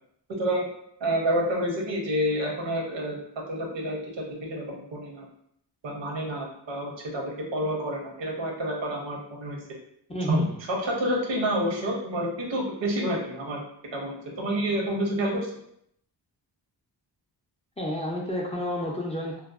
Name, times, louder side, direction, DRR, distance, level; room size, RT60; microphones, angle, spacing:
voice 1, 0.3-0.7 1.0-5.3 5.8-9.6 10.3-13.6 13.9-15.5, right 1 dB, 85° right, 0 dB, 0.7 m, -28 dB
voice 2, 10.1-10.6 17.8-19.4, left 1 dB, 15° left, -2 dB, 0.3 m, -31 dB
2.8 x 2.0 x 2.3 m, 0.72 s
wide cardioid pair, 95°, 43 cm